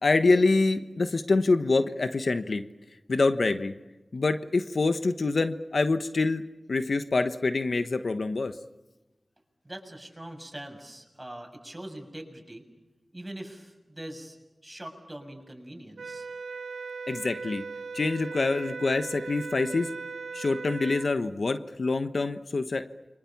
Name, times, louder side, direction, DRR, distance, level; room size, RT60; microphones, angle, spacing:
voice 1, 0.0-2.6 3.1-3.7 4.1-6.4 6.7-8.5 17.1-17.6 17.9-19.9 20.3-22.9, left 3 dB, 70° left, 9 dB, 1.2 m, -25 dB
voice 2, 9.6-12.6 13.1-14.4 14.6-16.3, right 1 dB, 20° right, 3 dB, 7.0 m, -42 dB
sound 1, 16.0-21.1, right 5 dB, 85° right, 1.0 m, -38 dB
29.5 x 24.5 x 7.2 m, 1.0 s
wide cardioid pair, 55°, 0 cm